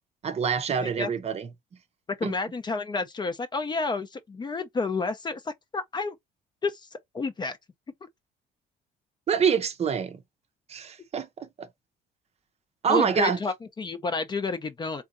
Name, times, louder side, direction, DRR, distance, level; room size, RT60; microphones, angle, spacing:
voice 1, 0.2-1.5 2.2-2.3 9.3-10.2 10.7-11.7 12.8-13.4, right 7 dB, 40° right, 0.6 m, -26 dB
voice 2, 0.8-1.1 2.2-6.1 6.6-6.9 7.1-7.6 8.0-8.1 12.9-15.0, left 3 dB, 25° left, 0.5 m, -30 dB
3.6 x 2.8 x 2.5 m
cardioid pair, 110°, 17 cm